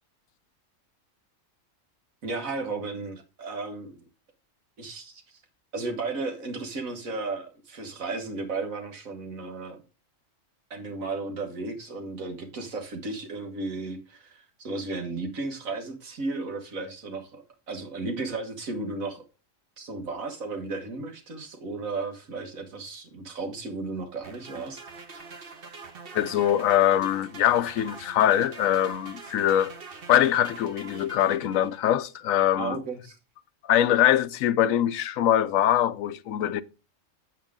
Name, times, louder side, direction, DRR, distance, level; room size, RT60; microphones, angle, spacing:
voice 1, 2.2-4.1 4.8-5.4 5.7-9.8 10.7-19.2 19.8-24.8 32.5-33.2, right 3 dB, 85° right, 1.9 m, -34 dB
sound 1, 24.2-32.0, right 4 dB, 45° right, 1.2 m, -44 dB
voice 2, 26.1-29.7 30.1-32.8 33.6-36.6, left 11 dB, 80° left, 1.0 m, -23 dB
8.4 x 7.6 x 3.6 m
omnidirectional pair, 1.4 m